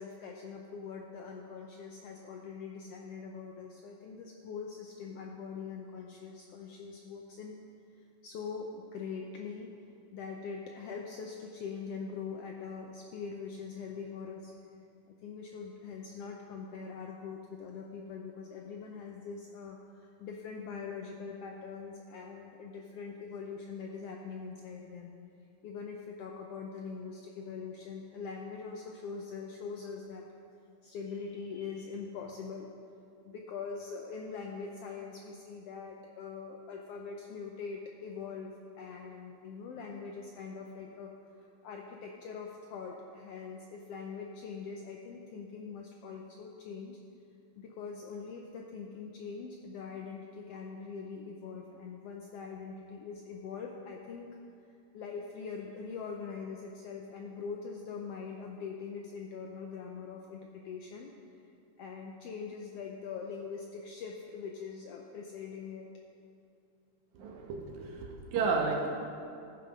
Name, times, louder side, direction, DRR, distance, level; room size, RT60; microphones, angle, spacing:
voice 1, 0.0-7.5 7.9-9.7 10.1-14.5 15.1-25.1 25.6-30.2 30.8-32.7 33.2-41.1 41.4-47.0 47.6-54.3 54.9-61.1 61.8-65.9, left 5 dB, 80° left, 1 dB, 1.4 m, -43 dB
voice 2, 67.1-68.9, right 4 dB, 80° right, 1 dB, 2.5 m, -32 dB
14.0 x 5.7 x 5.1 m, 2.5 s
omnidirectional pair, 3.4 m